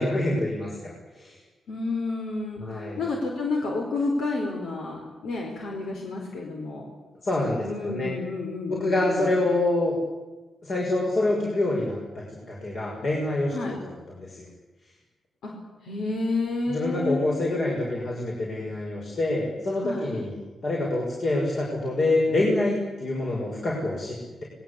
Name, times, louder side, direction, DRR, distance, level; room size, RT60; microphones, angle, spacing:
voice 1, 0.0-1.4 2.6-3.0 7.2-8.1 8.7-9.9 10.6-13.5 13.8-14.5 16.7-20.3 20.6-24.4, left 2 dB, 45° left, -3 dB, 6.2 m, -26 dB
voice 2, 1.7-6.9 7.6-9.3 13.5-13.8 15.4-15.5 15.8-17.3 19.8-20.0, left 3 dB, 75° left, 1 dB, 4.8 m, -30 dB
25.0 x 20.5 x 8.6 m, 1.2 s
wide cardioid pair, 125°, 0 cm